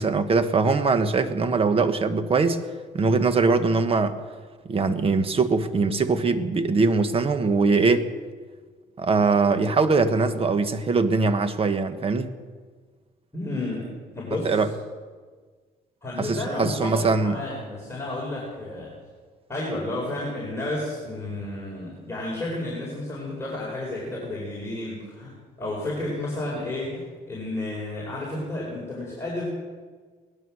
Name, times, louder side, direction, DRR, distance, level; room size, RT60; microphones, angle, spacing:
voice 1, 0.0-2.6 2.9-4.1 4.7-8.1 9.0-12.3 14.4-14.7 16.2-17.3, right 4 dB, 35° right, 9 dB, 1.3 m, -22 dB
voice 2, 13.3-14.6 16.0-18.9 19.5-25.3 25.6-29.5, left 1 dB, 15° left, -5 dB, 4.8 m, -31 dB
18.5 x 12.5 x 6.3 m, 1.5 s
cardioid pair, 110°, 17 cm